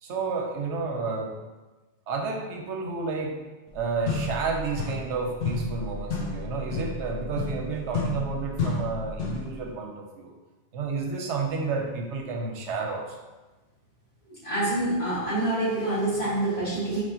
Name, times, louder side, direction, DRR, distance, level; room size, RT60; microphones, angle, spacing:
voice 1, 0.0-1.3 2.1-3.4 3.7-10.3 10.7-13.2, right 4 dB, 85° right, 2 dB, 0.9 m, -31 dB
sound 1, 3.7-3.8 4.1-5.2 5.4-9.5, left 3 dB, 60° left, 0.9 m, -31 dB
voice 2, 14.4-17.0, right 1 dB, 30° left, -10 dB, 1.5 m, -26 dB
4.6 x 3.3 x 2.7 m, 1.2 s
omnidirectional pair, 1.2 m